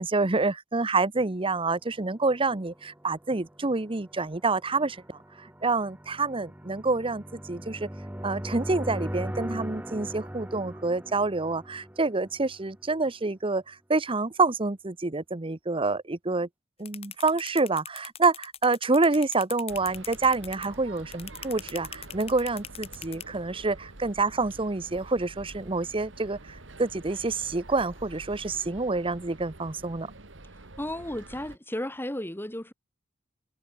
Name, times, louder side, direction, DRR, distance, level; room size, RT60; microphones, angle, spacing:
voice 1, 0.0-5.2 5.6-7.9 8.2-16.5 16.8-30.1, right 3 dB, 30° right, 0.9 m, -27 dB
sound 1, 2.1-12.9, equal, 10° right, 1.4 m, -40 dB
sound 2, 16.9-23.2, left 9 dB, 30° left, 0.9 m, -39 dB
sound 3, 19.7-31.6, right 2 dB, 70° right, 2.2 m, -47 dB
voice 2, 30.8-32.7, left 1 dB, 10° left, 3.0 m, -34 dB
head